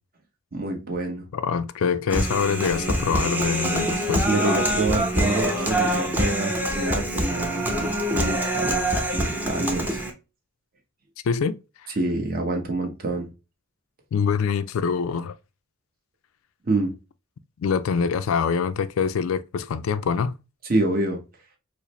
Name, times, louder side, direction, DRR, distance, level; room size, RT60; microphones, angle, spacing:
voice 1, 0.5-1.2 4.2-8.8 9.1-10.0 12.0-13.3 16.6-16.9 20.7-21.2, right 2 dB, 45° right, 0.9 m, -27 dB
voice 2, 1.3-4.3 11.2-11.6 14.1-15.3 17.6-20.4, left 6 dB, 80° left, 0.4 m, -24 dB
Human voice, 2.1-10.1, right 1 dB, 10° right, 0.7 m, -25 dB
4.7 x 2.0 x 3.0 m
head